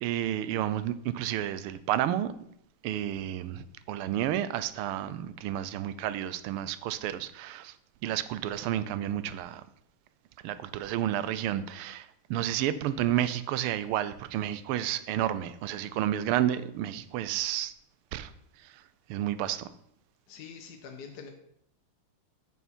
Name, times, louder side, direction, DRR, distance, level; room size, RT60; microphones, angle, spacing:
voice 1, 0.0-2.3 2.8-7.7 8.0-9.6 10.4-17.7 18.1-18.3 19.1-19.7, right 12 dB, 85° right, 1.5 m, -31 dB
voice 2, 20.3-21.3, left 6 dB, 60° left, 1.2 m, -45 dB
8.3 x 7.2 x 4.3 m
omnidirectional pair, 2.4 m